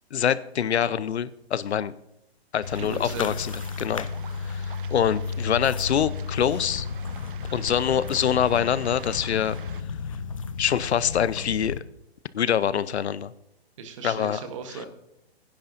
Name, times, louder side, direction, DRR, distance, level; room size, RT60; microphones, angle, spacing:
voice 1, 0.1-1.9 2.5-3.5 3.8-4.1 4.4-6.9 7.5-9.5 10.6-11.8 12.3-13.3 14.0-14.4, left 9 dB, 85° left, 17 dB, 0.7 m, -25 dB
sound 1, 2.6-11.8, left 5 dB, 35° left, 0.4 m, -33 dB
Waves surf, 2.6-9.8, right 8 dB, 55° right, 0.7 m, -47 dB
voice 2, 2.8-3.4 13.8-14.9, right 5 dB, 30° right, 8 dB, 1.1 m, -37 dB
21.5 x 10.0 x 2.6 m, 0.80 s
hypercardioid pair, 165°, 32 cm